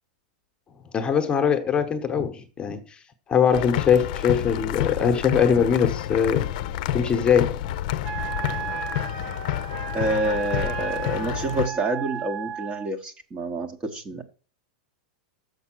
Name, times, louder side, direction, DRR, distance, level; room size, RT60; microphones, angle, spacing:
voice 1, 0.9-2.8 3.3-6.5 6.9-7.6, left 7 dB, 20° left, 1.1 m, -21 dB
sound 1, 3.5-11.7, left 12 dB, 60° left, 0.6 m, -29 dB
Wind instrument woodwind instrument, 8.0-12.9, right 8 dB, 65° right, 0.9 m, -34 dB
voice 2, 9.9-14.2, right 2 dB, 25° right, 1.1 m, -28 dB
6.8 x 5.4 x 6.2 m
hypercardioid pair, 120°, 5 cm